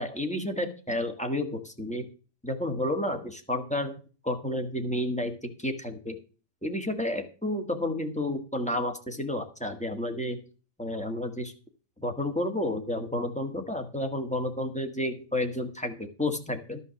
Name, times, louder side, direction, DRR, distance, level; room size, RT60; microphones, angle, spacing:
voice 1, 0.0-2.1 2.4-3.9 4.2-6.2 6.6-10.4 10.8-11.5 12.0-16.8, left 1 dB, 5° left, 5 dB, 1.3 m, -31 dB
12.5 x 5.6 x 7.0 m, 0.36 s
omnidirectional pair, 1.8 m